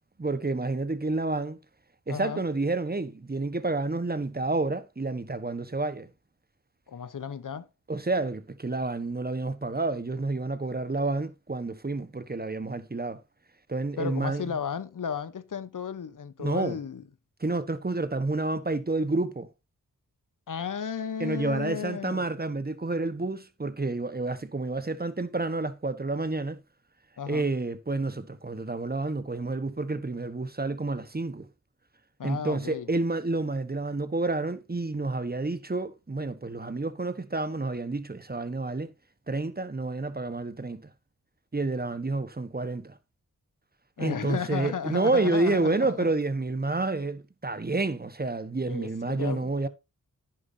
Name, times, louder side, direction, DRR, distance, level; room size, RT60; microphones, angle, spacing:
voice 1, 0.2-1.6 2.1-6.1 7.9-13.2 13.7-14.5 16.4-16.8 17.4-19.5 21.2-26.6 27.3-31.5 32.2-38.9 39.3-40.8 41.5-42.9 44.0-49.7, right 3 dB, 30° right, 1.3 m, -29 dB
voice 2, 2.1-2.4 6.9-7.7 14.0-17.0 20.5-22.2 27.2-27.5 32.2-32.9 44.0-46.1 48.6-49.7, left 7 dB, 75° left, 1.0 m, -34 dB
11.0 x 9.8 x 2.8 m
cardioid pair, 50°, 32 cm